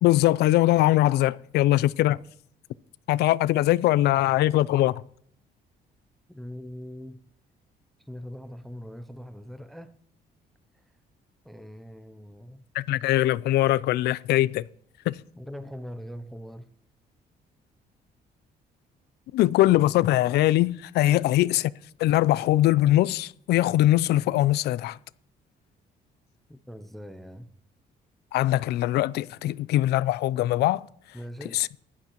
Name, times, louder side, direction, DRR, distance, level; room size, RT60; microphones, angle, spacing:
voice 1, 0.0-2.2 3.1-5.0 12.7-14.6 15.1-15.2 19.3-21.7 22.0-25.0 28.3-30.9 31.5-31.7, left 15 dB, 85° left, 0.4 m, -22 dB
voice 2, 6.3-7.2 8.1-10.0 11.4-12.6 15.4-16.7 26.5-27.5 31.1-31.7, equal, ahead, 0.5 m, -41 dB
15.5 x 11.5 x 3.0 m
cardioid pair, 160°, 17 cm